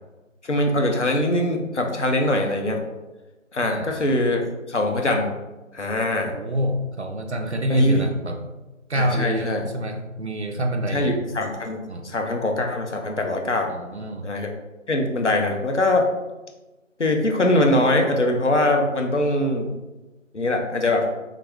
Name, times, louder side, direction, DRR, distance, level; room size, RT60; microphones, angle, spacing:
voice 1, 0.4-2.8 3.5-4.4 4.7-5.4 5.7-6.3 7.7-8.1 8.9-9.7 10.9-13.7 14.2-14.5 14.9-16.1 17.0-19.7 20.3-21.1, left 1 dB, 60° left, 2 dB, 0.6 m, -22 dB
voice 2, 3.6-4.0 6.3-8.4 8.9-11.1 11.9-12.1 13.7-14.3, equal, 60° right, 5 dB, 0.5 m, -26 dB
3.4 x 2.4 x 3.5 m, 1.1 s
figure-of-eight pair, 170°, 39 cm